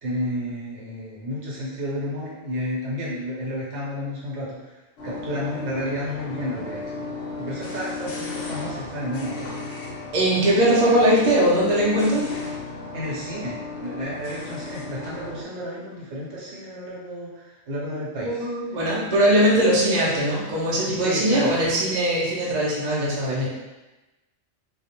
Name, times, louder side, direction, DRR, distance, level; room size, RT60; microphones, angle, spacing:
voice 1, 0.0-4.8 5.0-9.5 12.9-18.5 21.0-21.6, equal, 70° right, -6 dB, 1.0 m, -31 dB
sound 1, 5.0-15.4, left 3 dB, 70° left, 0.8 m, -35 dB
voice 2, 10.1-12.2 18.2-23.5, right 1 dB, 50° right, -5 dB, 0.6 m, -20 dB
2.2 x 2.0 x 2.8 m, 1.1 s
omnidirectional pair, 1.2 m